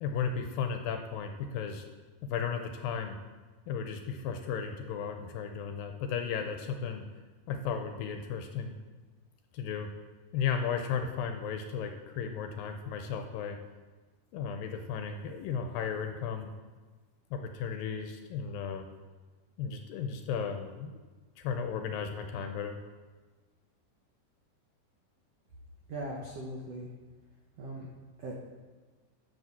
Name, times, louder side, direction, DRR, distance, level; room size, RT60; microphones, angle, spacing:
voice 1, 0.0-1.8 2.2-3.2 3.7-7.0 7.5-8.8 9.5-9.9 10.3-13.6 14.3-16.5 17.3-18.9 19.6-20.9 21.4-22.8, left 7 dB, 80° left, 5 dB, 2.2 m, -34 dB
voice 2, 25.9-26.9 27.6-27.9 28.2-28.3, right 1 dB, 85° right, -1 dB, 1.4 m, -39 dB
11.0 x 5.7 x 7.3 m, 1.4 s
omnidirectional pair, 4.6 m